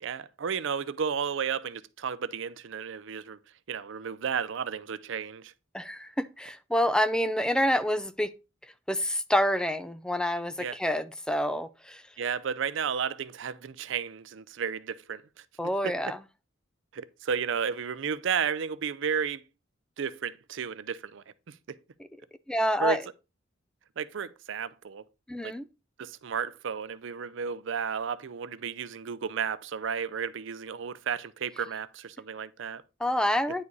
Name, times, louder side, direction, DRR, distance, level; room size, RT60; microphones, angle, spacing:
voice 1, 0.0-3.4 3.7-5.5 10.6-10.8 12.2-15.4 15.8-16.0 16.9-19.4 20.0-21.8 22.8-23.0 24.0-25.0 25.4-25.5 26.0-32.8, right 6 dB, 65° right, 0.5 m, -33 dB
voice 2, 5.7-8.3 8.9-12.0 15.6-16.2 22.5-23.0 25.3-25.7 33.0-33.6, equal, 5° left, 0.4 m, -27 dB
9.7 x 4.9 x 4.0 m
head